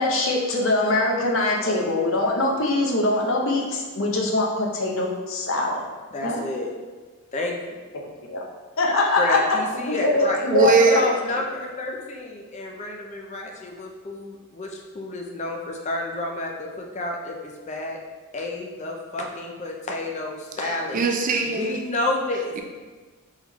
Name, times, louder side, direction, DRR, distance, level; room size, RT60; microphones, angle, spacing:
voice 1, 0.0-5.8 6.2-6.4 8.3-8.4 8.8-9.6 9.9-10.9, left 2 dB, 65° left, -1 dB, 0.7 m, -23 dB
voice 2, 6.1-6.7 7.3-7.8 9.2-10.4 10.9-18.0 18.3-21.0 21.4-22.5, left 2 dB, 35° left, 1 dB, 0.5 m, -30 dB
voice 3, 10.5-11.0 20.6-21.8, right 4 dB, 40° right, 3 dB, 0.4 m, -21 dB
3.6 x 3.1 x 3.5 m, 1.3 s
head